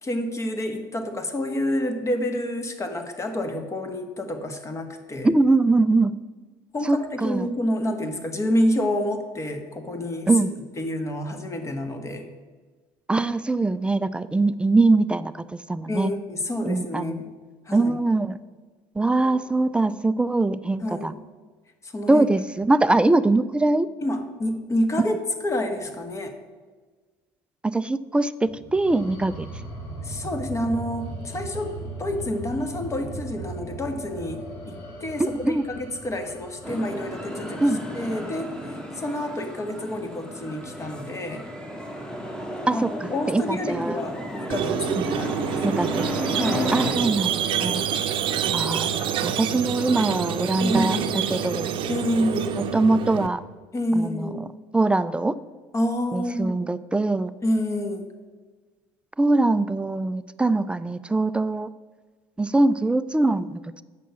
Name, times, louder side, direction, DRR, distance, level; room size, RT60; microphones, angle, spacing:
voice 1, 0.0-5.3 6.7-10.3 10.8-12.2 15.9-17.3 17.7-18.0 19.2-19.5 20.8-21.2 21.8-22.3 24.0-26.3 30.0-31.7 32.0-34.4 34.7-37.6 37.9-41.5 42.7-45.8 46.3-47.2 50.6-51.2 51.9-52.6 53.7-54.4 55.7-56.5 57.4-58.1, left 1 dB, 30° left, 6 dB, 1.4 m, -28 dB
voice 2, 5.2-6.1 6.8-7.5 10.3-10.5 13.1-15.4 15.7-16.1 16.6-17.2 17.7-18.4 19.0-21.1 22.1-23.9 27.6-29.5 35.2-35.6 37.6-37.8 42.7-44.0 45.0-45.1 45.6-46.1 46.7-47.8 48.5-48.9 49.2-51.7 52.6-53.4 53.9-54.4 54.7-55.4 56.1-57.3 59.2-61.7 62.4-63.6, right 2 dB, 10° right, 15 dB, 0.4 m, -22 dB
sound 1, 28.5-38.2, right 2 dB, 70° left, 2.8 m, -38 dB
sound 2, 36.6-46.9, equal, 10° left, 1.7 m, -33 dB
Squeak, 44.5-53.3, right 8 dB, 55° right, 0.7 m, -27 dB
8.3 x 6.0 x 5.9 m, 1.4 s
supercardioid pair, 80°, 10 cm